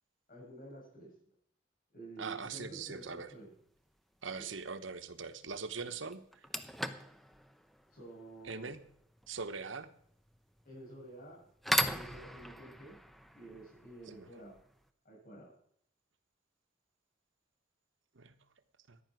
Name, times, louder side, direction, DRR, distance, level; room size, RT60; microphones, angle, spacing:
voice 1, 0.3-1.1 1.9-3.5 7.9-8.7 10.6-11.4 11.8-13.0 13.3-14.6 15.0-15.5, right 2 dB, 50° left, -1 dB, 6.6 m, -50 dB
voice 2, 2.2-3.3 4.2-6.5 8.4-8.8 9.3-9.9 14.1-14.3 18.1-18.4 18.9-19.0, right 5 dB, 80° right, 10 dB, 1.1 m, -42 dB
sound 1, 3.2-3.5 5.5-5.6 6.1-14.8, equal, ahead, 0.7 m, -39 dB
14.5 x 10.0 x 6.1 m, 0.67 s
head